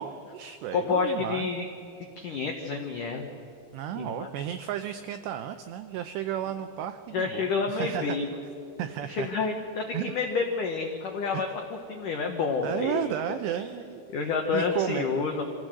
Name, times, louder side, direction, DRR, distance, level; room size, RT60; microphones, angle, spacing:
voice 1, 0.0-1.5 3.7-8.2 8.8-9.3 9.9-10.1 11.3-11.4 12.6-14.0 14.5-15.0, right 11 dB, 90° right, 9 dB, 2.4 m, -33 dB
voice 2, 0.7-1.7 2.2-3.3 3.9-4.3 7.1-8.2 9.1-13.1 14.1-15.4, left 4 dB, 85° left, 3 dB, 1.8 m, -29 dB
25.0 x 16.0 x 7.7 m, 2.9 s
omnidirectional pair, 5.8 m